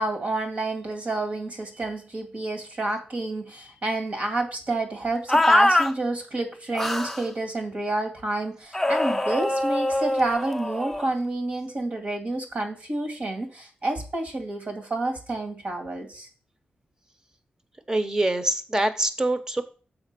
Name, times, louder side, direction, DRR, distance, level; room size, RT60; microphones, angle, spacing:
voice 1, 0.0-16.3, right 2 dB, 50° right, 4 dB, 2.2 m, -29 dB
sound 1, 5.3-5.9 6.7-7.2 8.7-11.1, left 1 dB, 5° left, 0.6 m, -23 dB
voice 2, 17.9-19.6, right 1 dB, 20° right, 10 dB, 1.0 m, -24 dB
7.1 x 4.9 x 6.7 m, 0.37 s
wide cardioid pair, 140°, 3 cm